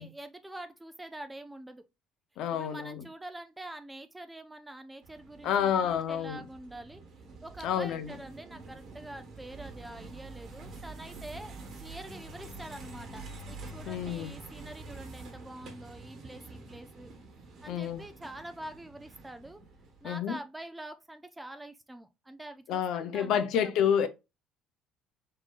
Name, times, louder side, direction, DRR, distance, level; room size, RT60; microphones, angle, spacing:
voice 1, 0.0-1.8 2.5-7.0 7.4-11.5 11.8-17.1 17.6-19.6 20.0-23.7, right 1 dB, 5° right, 0.4 m, -45 dB
voice 2, 2.4-3.0 5.4-6.4 7.6-8.1 13.9-14.3 17.7-18.0 20.0-20.4 22.7-24.1, left 8 dB, 55° left, 0.7 m, -29 dB
sound 1, 5.0-20.1, right 3 dB, 40° right, 1.2 m, -47 dB
5.1 x 3.8 x 2.4 m
cardioid pair, 180°, 0 cm